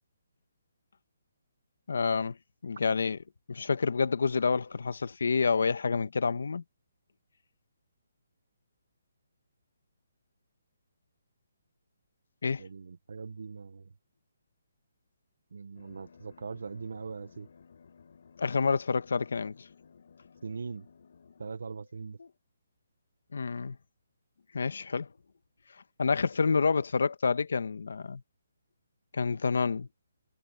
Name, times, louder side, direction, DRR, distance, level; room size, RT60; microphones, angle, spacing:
voice 1, 1.9-2.4 2.6-6.6 12.4-12.6 18.4-19.7 22.2-22.3 23.3-23.8 24.5-25.1 26.0-28.2 29.1-29.9, left 5 dB, 70° left, 1.3 m, -28 dB
voice 2, 12.6-13.9 15.5-17.5 20.4-20.9 21.4-22.2, right 5 dB, 65° right, 0.9 m, -41 dB
sound 1, 15.7-21.5, left 6 dB, 55° left, 7.5 m, -57 dB
hypercardioid pair, 175°, 0 cm